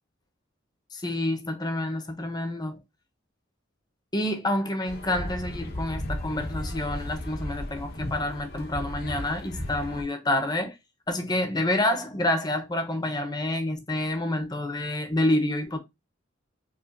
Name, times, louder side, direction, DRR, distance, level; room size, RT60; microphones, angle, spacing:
voice 1, 0.9-2.8 4.1-10.7 11.1-15.8, left 1 dB, 20° left, 0.8 m, -28 dB
sound 1, 4.9-10.0, left 1 dB, 55° left, 0.9 m, -35 dB
4.9 x 2.4 x 2.5 m
head